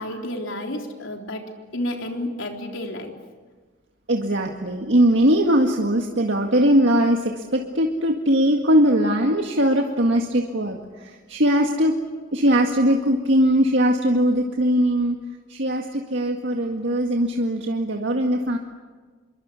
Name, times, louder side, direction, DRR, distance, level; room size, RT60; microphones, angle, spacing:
voice 1, 0.0-1.5 1.7-3.1, left 1 dB, 85° left, 2 dB, 3.9 m, -30 dB
voice 2, 4.1-10.8 11.0-11.9 12.3-15.2 15.5-18.6, equal, 65° right, 2 dB, 2.0 m, -20 dB
27.0 x 23.5 x 8.4 m, 1.4 s
head